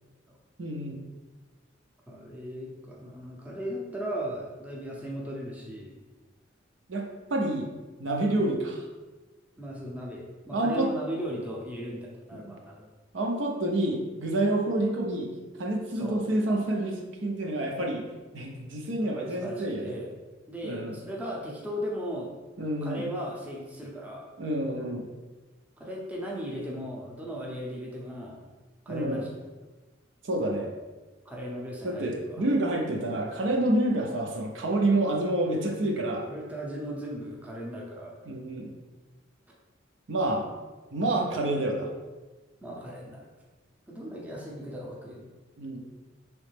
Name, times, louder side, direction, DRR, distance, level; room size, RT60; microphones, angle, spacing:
voice 1, 0.6-1.0 6.9-7.7 8.0-8.9 10.5-10.9 12.3-12.5 13.1-15.3 15.6-18.0 18.3-20.0 20.6-21.0 22.6-23.0 24.4-25.1 28.9-29.2 30.2-30.7 31.8-36.3 38.3-38.7 40.1-40.5 40.9-41.9 45.6-45.8, right 1 dB, 70° right, 1 dB, 0.7 m, -28 dB
voice 2, 2.1-6.0 9.6-12.9 16.0-16.2 19.0-20.1 20.5-22.3 22.8-24.3 25.8-28.5 28.9-29.3 31.2-32.4 36.3-38.1 40.3-40.4 42.6-43.3 43.9-45.3, equal, 10° right, -4 dB, 0.7 m, -37 dB
4.9 x 3.1 x 3.3 m, 1.2 s
head